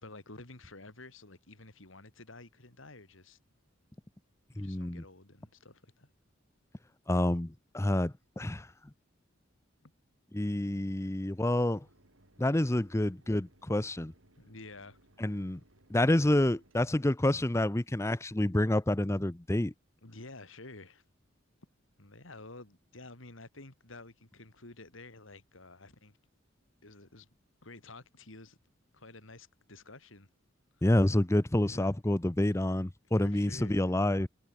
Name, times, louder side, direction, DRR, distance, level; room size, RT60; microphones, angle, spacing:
voice 1, 0.0-3.4 4.5-6.1 9.8-9.9 14.4-15.0 20.0-21.0 22.0-26.2 26.8-27.3 27.6-28.6 28.9-30.3 30.7-30.8 31.6-31.9 32.4-32.5 33.2-33.8, left 2 dB, 75° left, 3.2 m, -51 dB
voice 2, 4.6-5.0 7.1-8.7 10.3-11.8 12.4-14.1 15.2-15.6 15.9-19.7 30.8-34.3, left 1 dB, 15° left, 0.6 m, -28 dB
Mechanisms, 11.4-16.8, right 1 dB, 80° right, 7.3 m, -64 dB
head